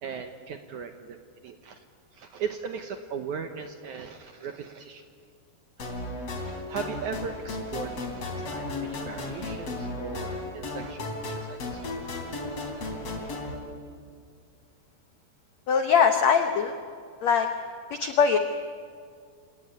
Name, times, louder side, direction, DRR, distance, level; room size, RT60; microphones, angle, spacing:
voice 1, 0.0-1.8 2.1-5.0 5.8-5.9 6.3-12.0 12.6-12.7, right 6 dB, 70° right, 7 dB, 1.8 m, -38 dB
sound 1, 5.8-13.5, left 2 dB, 40° left, 4.0 m, -35 dB
voice 2, 15.7-16.8 17.2-17.5 17.9-18.4, left 6 dB, 85° left, 7 dB, 1.5 m, -21 dB
28.0 x 18.5 x 9.7 m, 2.2 s
omnidirectional pair, 4.7 m